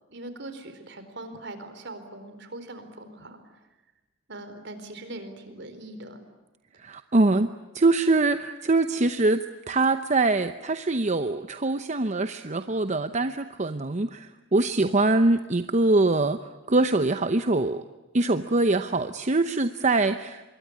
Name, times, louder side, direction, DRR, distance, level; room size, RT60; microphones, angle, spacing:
voice 1, 0.1-3.4 4.3-6.2, right 2 dB, 65° right, 9 dB, 4.3 m, -41 dB
voice 2, 6.8-16.4 16.7-17.8 18.1-20.4, right 2 dB, 40° right, 9 dB, 0.8 m, -23 dB
26.0 x 22.5 x 9.9 m, 1.1 s
head